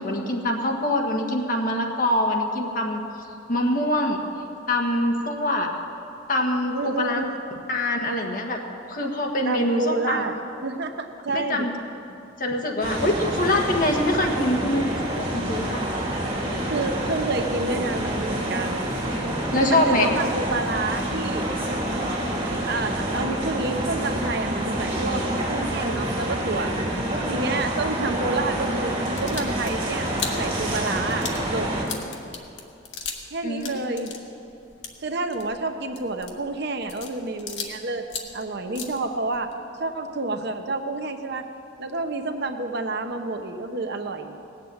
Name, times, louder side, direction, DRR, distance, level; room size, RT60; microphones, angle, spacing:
voice 1, 0.0-3.0 3.5-4.2 4.7-5.7 6.3-7.2 7.7-8.6 8.9-10.2 11.3-11.7 12.4-15.9 19.5-20.1 33.4-33.8, left 1 dB, 50° left, 1 dB, 1.6 m, -24 dB
voice 2, 6.7-7.4 9.4-10.3 10.6-11.7 16.7-18.8 19.5-21.6 22.6-26.7 27.3-30.1 30.4-31.7 33.3-34.2 35.0-38.1 38.3-39.5 39.8-41.5 41.8-44.3, right 3 dB, 60° right, 6 dB, 1.0 m, -29 dB
sound 1, 12.8-31.8, right 1 dB, 30° right, 3.5 m, -27 dB
sound 2, 29.1-33.3 33.6-37.8 38.0-39.5, left 6 dB, 75° left, 1.5 m, -37 dB
18.0 x 7.6 x 8.8 m, 2.7 s
head